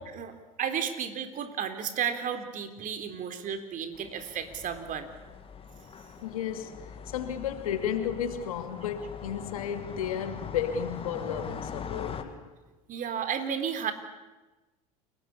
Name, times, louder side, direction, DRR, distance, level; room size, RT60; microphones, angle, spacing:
voice 1, 0.6-5.1 12.9-13.9, right 8 dB, 50° right, 3.8 m, -33 dB
sound 1, 3.9-12.2, left 6 dB, 30° left, 2.7 m, -42 dB
voice 2, 6.2-12.5, left 8 dB, 85° left, 2.7 m, -33 dB
29.0 x 18.5 x 8.6 m
hypercardioid pair, 75°, 18 cm